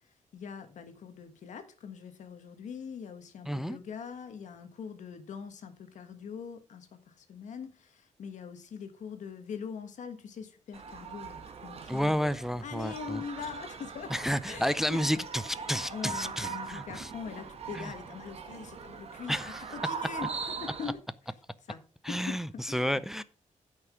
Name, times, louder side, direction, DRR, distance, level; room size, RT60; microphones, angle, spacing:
voice 1, 0.3-12.3 12.6-14.1 14.4-15.2 15.8-19.4 19.7-21.0 21.7-21.8 22.1-23.0, left 6 dB, 70° left, 1.4 m, -42 dB
voice 2, 3.5-3.8 11.9-13.2 14.1-17.1 17.7-17.9 19.3-19.6 22.0-23.2, equal, 5° right, 0.4 m, -31 dB
sound 1, 10.7-20.9, right 5 dB, 55° right, 1.2 m, -41 dB
9.7 x 5.8 x 5.0 m
wide cardioid pair, 140°, 13 cm